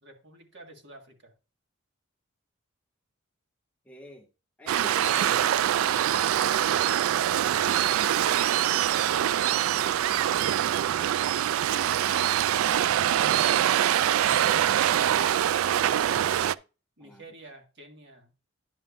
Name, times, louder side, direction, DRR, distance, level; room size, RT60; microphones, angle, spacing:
voice 1, 0.0-1.3 17.0-18.3, right 2 dB, 60° right, 3 dB, 1.7 m, -50 dB
voice 2, 3.8-4.3 4.6-5.8 17.0-17.2, right 1 dB, 5° left, 3 dB, 0.6 m, -49 dB
Waves surf, 4.7-16.5, right 11 dB, 80° right, 0.3 m, -24 dB
10.0 x 6.9 x 2.4 m, 0.31 s
head